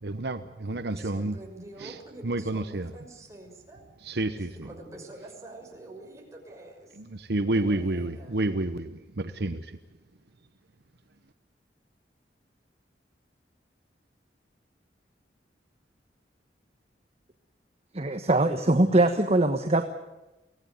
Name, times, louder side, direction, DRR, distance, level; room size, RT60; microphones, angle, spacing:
voice 1, 0.0-1.4 1.8-2.0 2.2-2.9 4.0-4.7 7.0-9.8, right 2 dB, 65° right, 10 dB, 1.0 m, -30 dB
voice 2, 0.6-3.8 4.4-7.0 7.5-8.4, right 2 dB, 15° right, 0 dB, 6.2 m, -46 dB
voice 3, 17.9-19.8, right 2 dB, 35° right, 7 dB, 1.3 m, -22 dB
24.0 x 17.5 x 9.3 m, 1.0 s
head